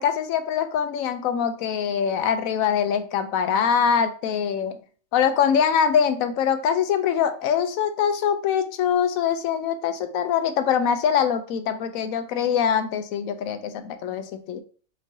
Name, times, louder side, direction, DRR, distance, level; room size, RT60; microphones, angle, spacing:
voice 1, 0.0-4.8 5.1-14.6, left 7 dB, 85° left, 9 dB, 1.0 m, -23 dB
5.2 x 3.1 x 2.7 m, 0.41 s
omnidirectional pair, 1.4 m